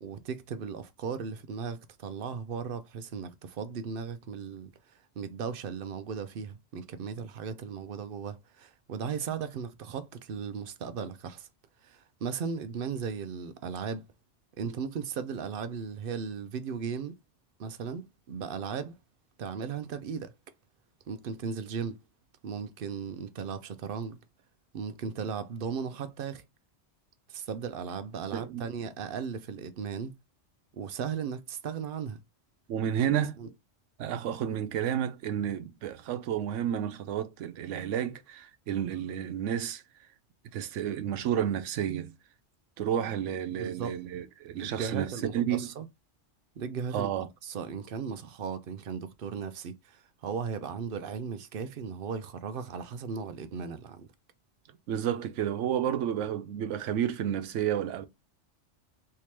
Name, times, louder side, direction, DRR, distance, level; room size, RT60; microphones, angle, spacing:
voice 1, 0.0-11.5 11.8-14.1 14.6-17.2 17.6-19.0 19.4-20.3 21.1-22.0 22.4-24.2 24.7-26.4 27.3-30.1 30.7-32.2 33.4-33.5 43.6-44.0 44.5-45.9 46.6-47.1 47.4-54.1, right 6 dB, 60° right, 0.6 m, -36 dB
voice 2, 28.3-28.6 32.7-33.4 34.0-39.8 40.5-42.1 42.8-45.1 45.3-45.7 46.9-47.3 54.9-58.1, right 9 dB, 90° right, 0.9 m, -31 dB
3.3 x 2.8 x 2.9 m
omnidirectional pair, 1.2 m